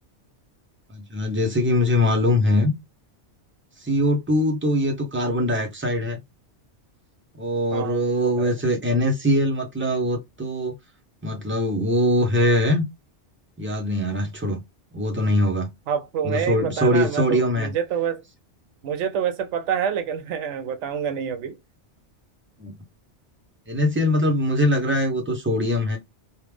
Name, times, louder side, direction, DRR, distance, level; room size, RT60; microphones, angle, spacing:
voice 1, 0.9-2.7 3.8-6.2 7.3-10.7 11.2-12.8 13.6-14.6 14.9-15.7 16.2-17.7 22.6-22.7 23.7-26.0, left 1 dB, 10° right, 0.8 m, -22 dB
voice 2, 7.7-8.5 15.9-18.2 18.8-21.6, right 8 dB, 80° right, 0.9 m, -27 dB
3.2 x 2.4 x 3.3 m
omnidirectional pair, 1.2 m